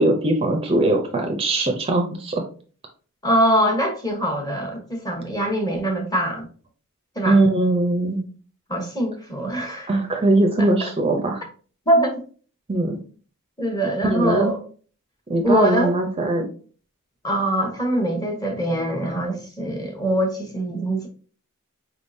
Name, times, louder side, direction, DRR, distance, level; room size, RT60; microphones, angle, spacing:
voice 1, 0.0-2.4 7.3-8.2 9.9-11.4 12.7-13.0 14.0-14.5 15.3-16.5, right 2 dB, 25° right, 0.5 m, -20 dB
voice 2, 3.2-6.5 7.2-7.4 8.7-9.9 11.9-12.2 13.6-14.6 15.4-16.0 17.2-21.1, equal, 15° left, 0.9 m, -23 dB
4.7 x 3.6 x 2.6 m
head